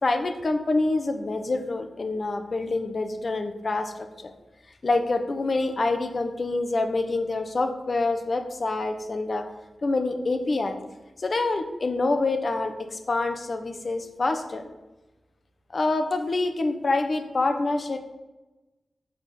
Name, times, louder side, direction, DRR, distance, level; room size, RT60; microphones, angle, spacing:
voice 1, 0.0-4.3 4.8-9.5 9.8-10.8 11.2-14.7 15.7-18.0, left 2 dB, 35° left, 6 dB, 1.2 m, -26 dB
10.5 x 6.2 x 7.8 m, 1.1 s
wide cardioid pair, 180°, 0 cm